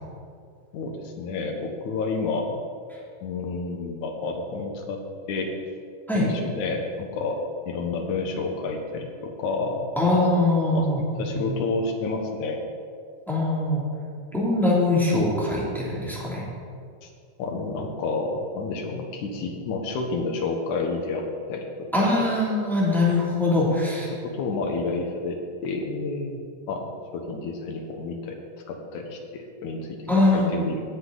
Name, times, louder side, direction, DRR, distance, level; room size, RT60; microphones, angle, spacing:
voice 1, 0.7-2.6 3.2-5.0 5.3-5.5 6.1-9.9 10.7-12.6 17.0-17.1 17.4-22.1 23.6-23.8 24.1-26.4 26.7-28.3 28.7-30.0 30.3-30.8, left 3 dB, 65° left, 3 dB, 2.4 m, -30 dB
voice 2, 10.0-11.5 13.3-13.8 14.3-16.4 21.9-24.1 30.1-30.5, left 2 dB, ahead, -6 dB, 2.1 m, -22 dB
18.0 x 8.2 x 4.0 m, 2.3 s
omnidirectional pair, 4.1 m